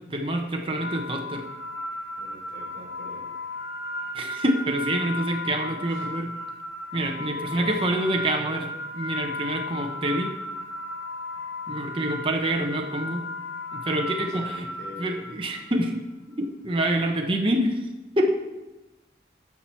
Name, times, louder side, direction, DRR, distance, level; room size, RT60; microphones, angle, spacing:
voice 1, 0.1-1.4 4.1-6.4 6.9-10.3 11.7-13.3 13.7-14.7 15.0-16.0 16.4-17.8 18.2-18.3, right 1 dB, 30° right, 2 dB, 0.9 m, -26 dB
sound 1, 0.8-15.9, left 2 dB, 90° left, 2.4 m, -35 dB
voice 2, 2.2-3.3 5.9-6.1 7.0-7.8 14.0-15.1, left 1 dB, 75° left, -2 dB, 3.3 m, -44 dB
11.0 x 6.0 x 4.5 m, 1.1 s
head